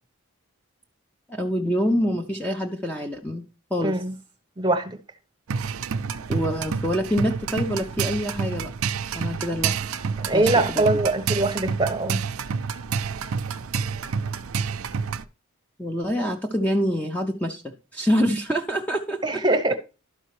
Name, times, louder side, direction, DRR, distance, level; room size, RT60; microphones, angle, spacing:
voice 1, 1.3-4.0 6.3-8.7 9.1-10.0 10.3-10.5 15.8-19.4, equal, 5° left, 0.5 m, -26 dB
voice 2, 3.8-4.1 4.6-5.0 10.2-12.2 19.2-19.7, right 2 dB, 20° right, 0.8 m, -22 dB
sound 1, 5.5-15.2, right 6 dB, 75° right, 0.5 m, -28 dB
12.0 x 5.4 x 3.1 m
head